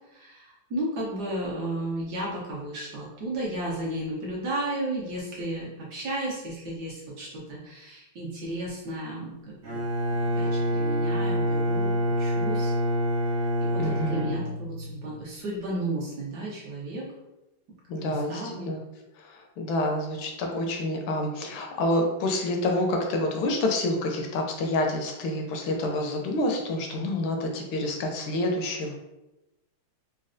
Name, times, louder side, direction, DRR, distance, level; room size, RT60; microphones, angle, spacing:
voice 1, 0.1-9.8 10.2-12.7 13.6-17.1 18.0-18.7, right 1 dB, 65° right, -5 dB, 1.2 m, -33 dB
Bowed string instrument, 9.6-15.1, equal, 85° right, 0.5 m, -26 dB
voice 2, 13.8-14.3 17.9-18.8 19.2-28.9, left 1 dB, 75° left, 2 dB, 1.3 m, -28 dB
4.0 x 2.2 x 2.5 m, 0.97 s
omnidirectional pair, 2.3 m